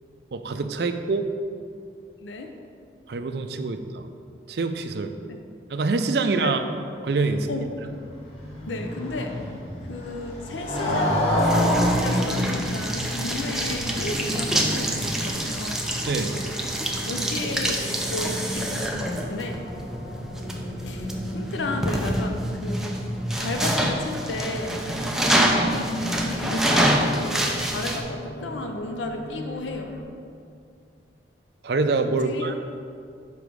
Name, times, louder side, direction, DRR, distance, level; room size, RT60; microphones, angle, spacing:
voice 1, 0.3-1.3 3.1-4.1 4.5-5.1 5.7-6.6 7.0-7.5 16.1-16.4 31.6-32.5, right 3 dB, 60° right, 8 dB, 0.4 m, -25 dB
voice 2, 2.2-2.5 5.3-5.4 6.2-6.5 7.5-7.7 8.7-9.3 9.9-11.6 12.0-15.9 17.0-19.7 20.8-21.1 21.3-23.0 23.4-24.9 25.5-29.9 32.2-32.5, left 2 dB, 85° left, 4 dB, 0.6 m, -33 dB
Motorcycle, 7.6-15.6, equal, 35° left, 1.3 m, -27 dB
sound 1, 10.8-28.0, right 1 dB, 5° right, 0.5 m, -27 dB
sound 2, 12.5-30.0, equal, 55° left, 0.8 m, -35 dB
7.0 x 4.9 x 4.7 m, 2.3 s
head